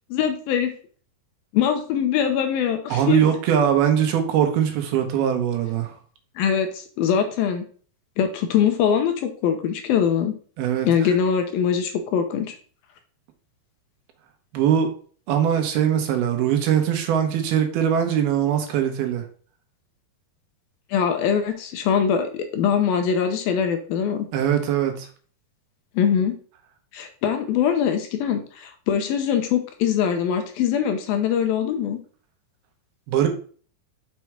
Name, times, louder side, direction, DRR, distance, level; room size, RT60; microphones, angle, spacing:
voice 1, 0.1-0.7 1.5-3.2 6.4-7.6 8.2-10.3 10.8-12.6 20.9-24.3 26.0-26.4 26.9-32.0, left 8 dB, 75° left, 2.5 m, -22 dB
voice 2, 2.9-5.9 10.6-10.9 14.5-14.9 15.3-19.2 24.3-25.1 33.1-33.3, right 9 dB, 75° right, 2.9 m, -21 dB
6.1 x 5.9 x 4.7 m
omnidirectional pair, 4.6 m